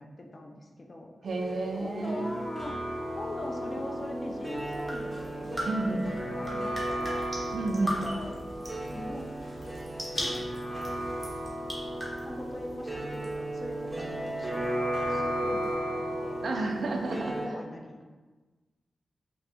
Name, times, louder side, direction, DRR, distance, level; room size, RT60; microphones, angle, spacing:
voice 1, 0.0-1.1 1.7-2.7 3.1-8.3 8.9-9.2 12.2-16.4 17.1-18.0, left 1 dB, 35° left, 1 dB, 0.4 m, -42 dB
voice 2, 1.2-2.3 5.7-6.1 7.5-8.0 16.4-17.4, right 2 dB, 65° right, 4 dB, 0.3 m, -31 dB
sound 1, 1.3-17.5, right 1 dB, 15° right, 0.5 m, -34 dB
sound 2, 4.0-11.9, left 1 dB, 85° left, 0.7 m, -52 dB
sound 3, 4.5-15.7, equal, ahead, 0.9 m, -41 dB
2.7 x 2.5 x 3.3 m, 1.3 s
wide cardioid pair, 140°, 0 cm